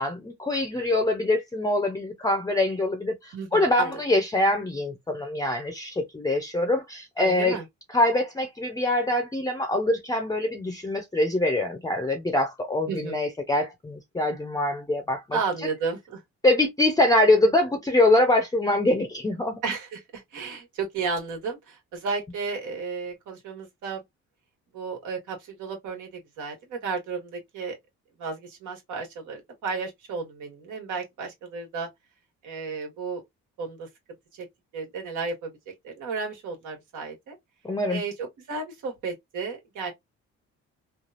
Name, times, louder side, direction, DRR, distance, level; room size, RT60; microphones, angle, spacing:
voice 1, 0.0-7.6 7.9-15.4 16.4-19.6 37.6-38.0, left 1 dB, 10° left, 0.5 m, -24 dB
voice 2, 3.3-3.9 7.2-7.6 12.9-13.2 15.3-16.2 19.6-24.0 24.7-27.7 28.2-31.9 32.4-33.2 33.6-33.9 34.4-34.5 34.7-37.4 37.9-39.9, right 4 dB, 85° right, 1.6 m, -33 dB
3.3 x 2.2 x 2.4 m
cardioid pair, 90°, 30 cm